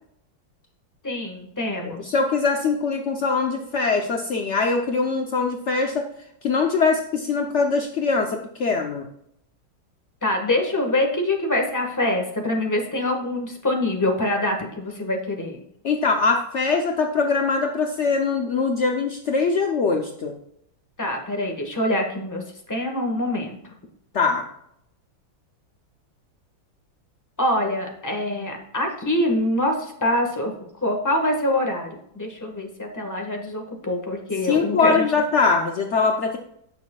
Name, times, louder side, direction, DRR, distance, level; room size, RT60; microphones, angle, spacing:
voice 1, 1.0-2.1 10.2-15.6 21.0-23.6 27.4-30.5 30.8-31.9 32.1-35.0, left 1 dB, 10° left, 2 dB, 1.2 m, -25 dB
voice 2, 2.1-6.1 6.4-9.0 15.8-20.3 24.1-24.5 34.4-36.4, left 4 dB, 70° left, 3 dB, 0.6 m, -22 dB
17.0 x 6.3 x 2.3 m, 0.74 s
omnidirectional pair, 2.2 m